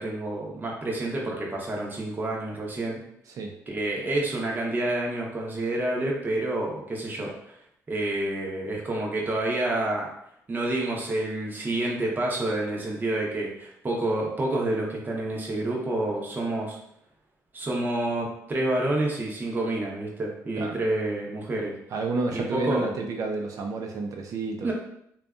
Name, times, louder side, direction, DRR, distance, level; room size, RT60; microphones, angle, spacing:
voice 1, 0.0-3.0 3.7-7.5 7.9-10.1 10.5-16.8 17.5-21.7 22.3-22.9 24.6-24.7, right 2 dB, 30° right, -2 dB, 0.7 m, -28 dB
voice 2, 21.9-24.7, right 3 dB, 65° right, 3 dB, 0.5 m, -30 dB
2.6 x 2.3 x 2.3 m, 0.74 s
supercardioid pair, 70°, 6 cm